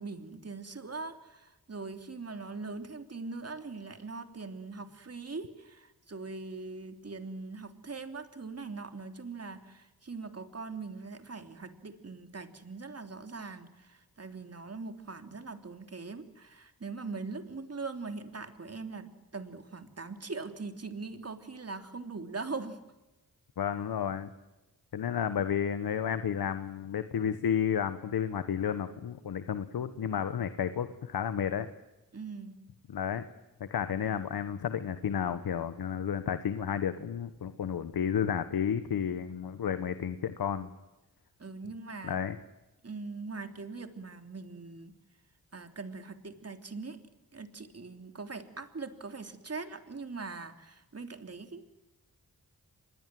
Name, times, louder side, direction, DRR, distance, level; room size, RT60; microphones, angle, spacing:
voice 1, 0.0-22.8 32.1-32.6 41.4-42.2 42.8-44.9 45.5-47.0 47.3-51.6, right 4 dB, 45° right, 7 dB, 3.3 m, -41 dB
voice 2, 23.6-24.3 24.9-31.7 32.9-33.2 33.6-40.7 42.1-42.4, left 8 dB, 85° left, 11 dB, 1.3 m, -32 dB
26.0 x 21.0 x 7.7 m, 1.0 s
cardioid pair, 60°, 35 cm